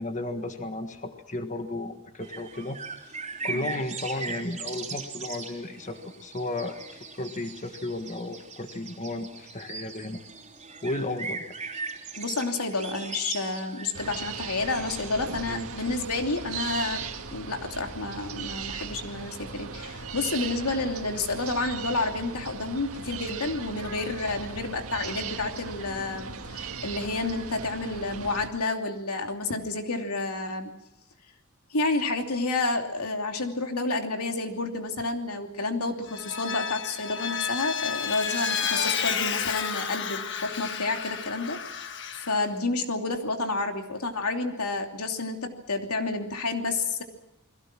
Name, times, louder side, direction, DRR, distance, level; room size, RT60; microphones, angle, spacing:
voice 1, 0.0-2.8 3.4-10.2 10.8-11.5 15.4-15.7, left 2 dB, 35° left, 6 dB, 1.5 m, -34 dB
sound 1, 2.2-17.4, right 5 dB, 30° right, 3.3 m, -40 dB
voice 2, 12.2-30.7 31.7-47.0, left 3 dB, 90° left, 4 dB, 2.9 m, -30 dB
sound 2, 13.9-28.5, right 5 dB, 75° right, 1.9 m, -38 dB
Vehicle, 36.1-42.5, left 7 dB, 55° left, 1.4 m, -31 dB
30.0 x 22.0 x 6.1 m, 0.82 s
head